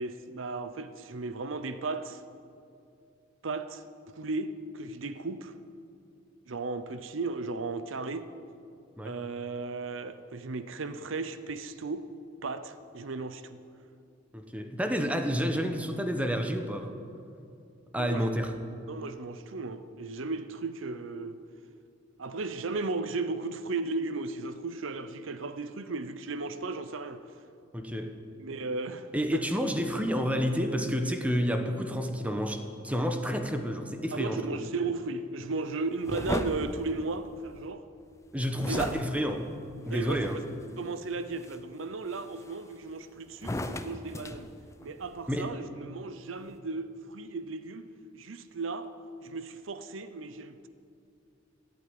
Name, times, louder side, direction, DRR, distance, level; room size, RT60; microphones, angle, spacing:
voice 1, 0.0-2.2 3.4-3.8 4.2-5.5 6.5-8.3 9.0-12.1 12.4-13.6 18.0-18.3 18.9-21.4 22.2-27.2 28.4-29.5 34.1-37.9 38.7-38.9 39.9-40.3 40.8-44.5 44.8-47.8 48.1-48.9 49.2-50.7, right 3 dB, 80° right, 0.7 m, -35 dB
voice 2, 14.3-16.9 17.9-18.5 27.7-28.1 29.1-34.6 38.3-39.4 39.9-40.4 45.3-45.5, equal, 5° right, 1.1 m, -30 dB
sound 1, 36.0-37.7 38.6-40.6 41.2-41.6 42.1-42.9 43.3-45.2, left 1 dB, 15° left, 0.6 m, -37 dB
14.5 x 8.6 x 9.7 m
head